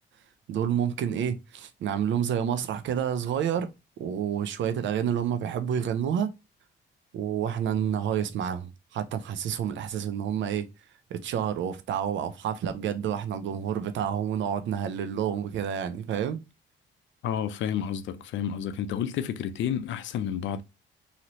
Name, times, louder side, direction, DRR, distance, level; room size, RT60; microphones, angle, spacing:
voice 1, 0.5-3.7 4.0-6.3 7.1-10.7 11.1-16.4, right 8 dB, 70° right, 0.6 m, -29 dB
voice 2, 17.2-20.6, left 9 dB, 70° left, 0.5 m, -30 dB
3.0 x 2.8 x 2.7 m
cardioid pair, 90°, 20 cm